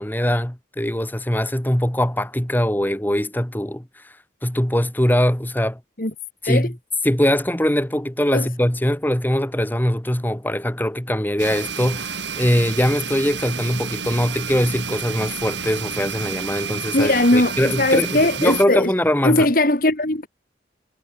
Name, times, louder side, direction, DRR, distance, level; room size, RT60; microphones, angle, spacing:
voice 1, 0.0-4.1 4.4-5.8 6.4-6.7 7.0-19.5, equal, 10° left, 1.5 m, -22 dB
sound 1, 11.4-18.6, right 6 dB, 85° right, 4.8 m, -30 dB
voice 2, 16.9-18.9 19.2-20.3, left 2 dB, 50° left, 2.2 m, -19 dB
head